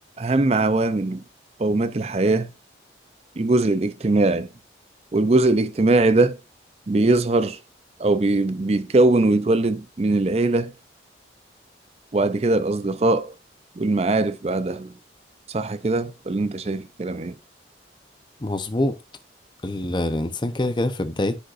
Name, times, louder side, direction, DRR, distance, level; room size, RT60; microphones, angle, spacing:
voice 1, 0.2-1.2 1.6-2.5 3.4-4.5 5.1-6.4 6.9-7.6 8.0-10.7 12.1-13.3 13.8-14.9 15.5-17.3, right 2 dB, 35° right, 0.5 m, -21 dB
voice 2, 18.4-19.0 19.6-21.4, left 1 dB, 25° left, 0.7 m, -25 dB
10.0 x 5.3 x 2.5 m
head